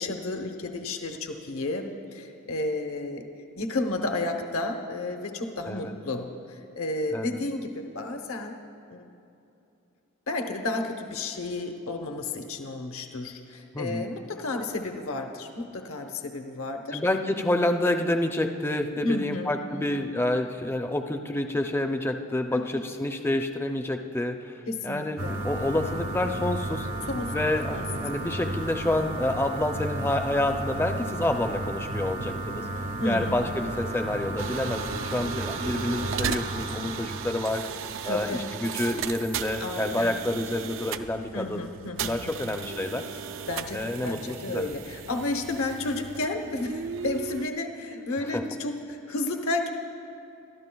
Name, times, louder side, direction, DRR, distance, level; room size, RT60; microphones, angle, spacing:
voice 1, 0.0-3.3 3.6-8.6 8.9-9.0 10.3-17.0 19.0-20.0 22.5-22.7 24.7-25.4 27.1-27.3 27.7-27.9 33.0-33.4 38.0-38.4 39.6-40.2 41.3-42.5 43.5-49.7, left 2 dB, 75° left, 4 dB, 0.9 m, -32 dB
voice 2, 13.7-14.1 16.9-26.9 27.3-32.7 33.0-37.6 38.0-41.7 42.0-43.0 43.7-44.6 48.3-48.4, left 1 dB, 10° left, 5 dB, 0.4 m, -28 dB
sound 1, 25.2-37.6, right 1 dB, 80° right, 0.9 m, -33 dB
sound 2, 34.4-47.5, right 6 dB, 60° right, 0.4 m, -36 dB
24.5 x 13.0 x 2.3 m, 2.8 s
head